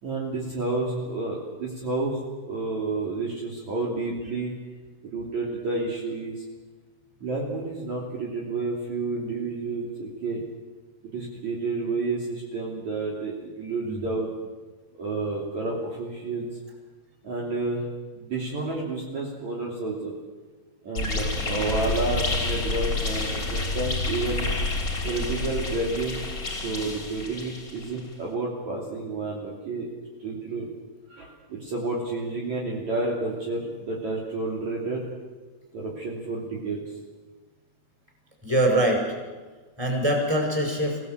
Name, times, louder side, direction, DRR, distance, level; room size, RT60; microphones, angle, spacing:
voice 1, 0.0-4.5 5.1-6.4 7.2-10.4 11.1-14.3 14.9-16.5 17.2-20.1 20.8-24.5 25.0-26.2 26.5-29.9 30.2-30.7 31.1-35.0 35.7-36.8, right 3 dB, 45° right, -3 dB, 4.1 m, -30 dB
voice 2, 13.8-14.1 38.4-39.2 39.8-41.0, right 1 dB, 5° right, 0 dB, 5.5 m, -23 dB
sound 1, 20.9-28.0, left 3 dB, 20° left, 3.1 m, -29 dB
26.0 x 17.5 x 8.1 m, 1.3 s
omnidirectional pair, 4.9 m